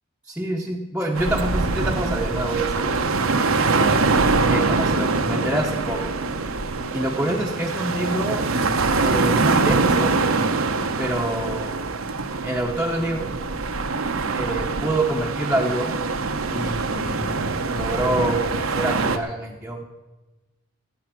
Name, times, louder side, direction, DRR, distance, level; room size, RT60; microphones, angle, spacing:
voice 1, 0.3-3.0 3.7-6.1 6.9-8.4 9.0-10.2 11.0-11.8 12.4-13.3 14.3-16.0 16.5-17.4 17.7-19.8, right 1 dB, 5° right, -3 dB, 0.9 m, -26 dB
sound 1, 1.1-19.2, right 3 dB, 70° right, 1.0 m, -23 dB
18.5 x 8.6 x 6.1 m, 1.1 s
head